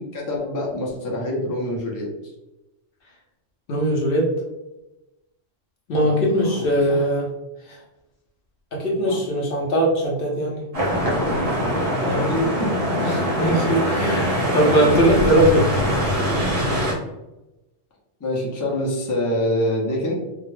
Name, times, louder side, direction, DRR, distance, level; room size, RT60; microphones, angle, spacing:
voice 1, 0.0-2.1 6.0-7.1 9.0-9.2 12.0-13.4 18.2-20.1, left 1 dB, 30° left, -3 dB, 0.3 m, -26 dB
voice 2, 3.7-4.3 5.9-7.3 8.7-10.6 11.2-11.3 13.0-15.7, right 1 dB, 60° left, -2 dB, 0.7 m, -20 dB
sound 1, 10.7-16.9, equal, 35° right, 0.6 m, -22 dB
2.2 x 2.1 x 3.1 m, 0.98 s
omnidirectional pair, 1.2 m